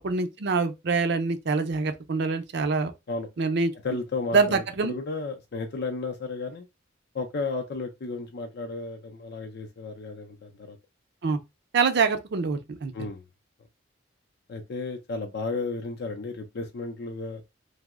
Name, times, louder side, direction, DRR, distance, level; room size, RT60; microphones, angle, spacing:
voice 1, 0.0-2.9 3.4-3.7 4.3-4.9 11.2-11.4 11.7-13.1, right 4 dB, 60° right, 0.5 m, -25 dB
voice 2, 3.8-6.7 7.1-10.8 12.9-13.2 14.5-17.4, left 3 dB, 55° left, 0.5 m, -33 dB
2.8 x 2.0 x 3.5 m
head